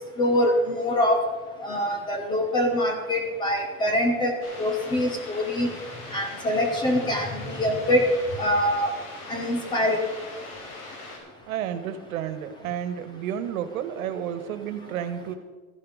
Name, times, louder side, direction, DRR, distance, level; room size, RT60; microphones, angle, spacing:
voice 1, 0.2-1.2 1.6-4.3 4.6-5.7 6.1-8.0 8.4-8.9 9.3-10.0, left 1 dB, 10° left, 4 dB, 0.6 m, -24 dB
sound 1, 4.4-11.2, left 2 dB, 90° left, 5.0 m, -41 dB
voice 2, 11.5-15.3, right 9 dB, 70° right, 11 dB, 1.5 m, -31 dB
14.0 x 11.5 x 5.1 m, 1.3 s
supercardioid pair, 175°, 43 cm